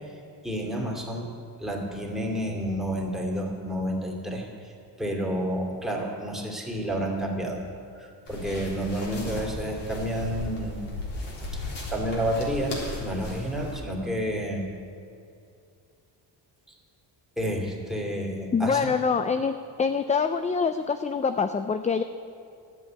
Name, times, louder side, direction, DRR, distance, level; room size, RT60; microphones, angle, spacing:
voice 1, 0.4-1.3 1.6-4.7 5.0-7.6 8.0-10.8 11.5-14.7 16.7-16.8 17.4-18.9, equal, ahead, 0 dB, 2.7 m, -30 dB
sound 1, 8.2-13.8, left 2 dB, 60° left, 3.8 m, -36 dB
voice 2, 18.5-22.0, left 5 dB, 20° left, 10 dB, 0.3 m, -25 dB
10.5 x 8.5 x 9.2 m, 2.6 s
cardioid pair, 85°, 45 cm